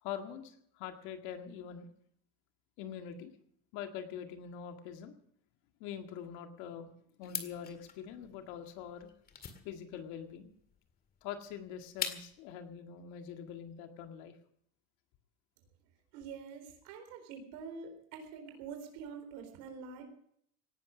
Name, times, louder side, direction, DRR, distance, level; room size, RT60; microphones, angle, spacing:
voice 1, 0.0-1.9 2.8-3.3 3.7-5.2 5.8-6.9 7.2-9.1 9.6-10.5 11.2-14.3, left 8 dB, 80° left, 5 dB, 2.0 m, -44 dB
sound 1, 7.2-12.5, left 7 dB, 30° left, 2.0 m, -43 dB
voice 2, 16.1-20.0, right 5 dB, 80° right, 5 dB, 4.1 m, -46 dB
18.0 x 11.0 x 6.3 m, 0.67 s
cardioid pair, 150°, 29 cm